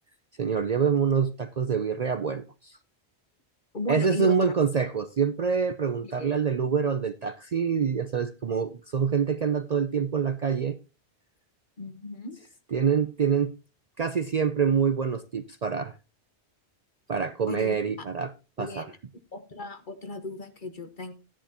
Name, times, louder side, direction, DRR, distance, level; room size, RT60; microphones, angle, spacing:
voice 1, 0.4-2.8 3.9-10.8 12.7-13.5 14.0-15.9 17.1-18.3 18.6-18.9, right 6 dB, 45° right, 0.6 m, -26 dB
voice 2, 3.7-4.3 6.1-6.3 11.8-12.4 17.5-18.1 18.6-19.0 19.3-21.1, left 2 dB, 50° left, 1.4 m, -36 dB
13.5 x 10.0 x 2.9 m
omnidirectional pair, 1.1 m